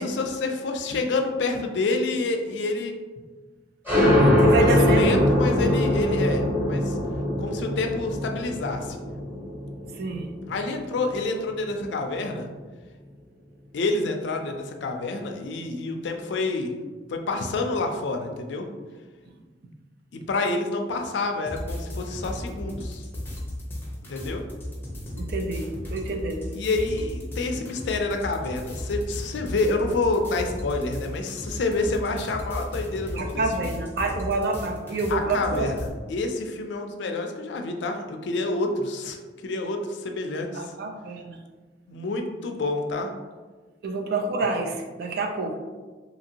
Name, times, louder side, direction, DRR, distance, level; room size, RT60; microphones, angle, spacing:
voice 1, 0.0-2.9 4.6-7.0 7.4-9.0 10.5-12.5 13.7-16.7 17.1-18.7 20.1-23.0 24.1-24.4 26.5-33.7 35.1-35.7 36.1-39.2 39.4-40.7 41.9-43.1, left 3 dB, 70° left, 4 dB, 0.4 m, -28 dB
sound 1, 3.9-11.1, left 1 dB, 10° right, 1.0 m, -22 dB
voice 2, 4.4-5.2 9.9-10.3 25.2-26.6 33.2-35.8 40.5-41.4 43.8-45.6, right 3 dB, 60° right, 3 dB, 0.4 m, -28 dB
sound 2, 21.5-35.9, left 1 dB, 10° left, 0.6 m, -35 dB
2.9 x 2.5 x 2.8 m, 1.4 s
head